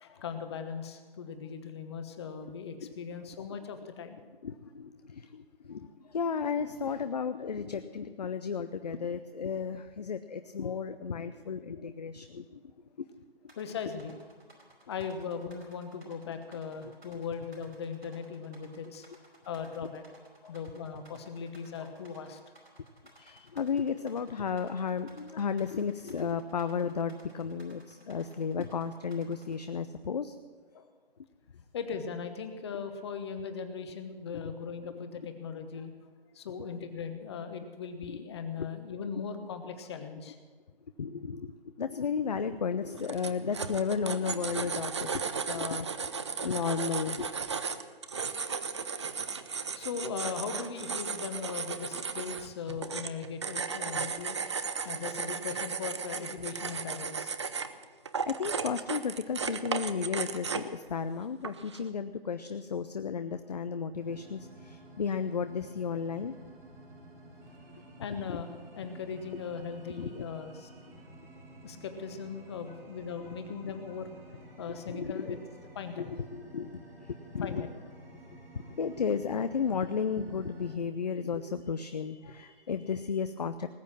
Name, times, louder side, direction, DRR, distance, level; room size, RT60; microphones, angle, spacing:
voice 1, 0.0-4.2 13.6-14.1 14.9-19.0 19.4-20.0 20.5-22.4 23.3-23.5 30.7-30.9 31.7-35.9 36.3-40.4 49.7-54.4 54.8-57.4 68.0-70.7 71.6-74.1 74.6-75.4 75.7-76.1 77.4-77.7 82.2-82.3, left 6 dB, 25° left, 8 dB, 1.2 m, -39 dB
voice 2, 4.4-12.6 20.4-20.5 23.2-30.3 38.1-38.2 38.6-38.7 41.0-41.5 41.8-46.1 46.4-47.3 58.3-66.3 68.3-68.4 70.0-70.1 73.2-73.4 74.7-75.4 76.0-77.7 78.7-83.7, left 6 dB, 45° left, 11 dB, 0.6 m, -34 dB
sound 1, 13.5-29.6, right 2 dB, 85° right, 4.9 m, -58 dB
sound 2, 42.8-60.8 61.4-61.8, right 5 dB, 30° right, 0.5 m, -35 dB
sound 3, 64.0-80.8, right 1 dB, 10° right, 1.7 m, -52 dB
19.5 x 8.3 x 7.3 m, 1.5 s
figure-of-eight pair, 145°, 30 cm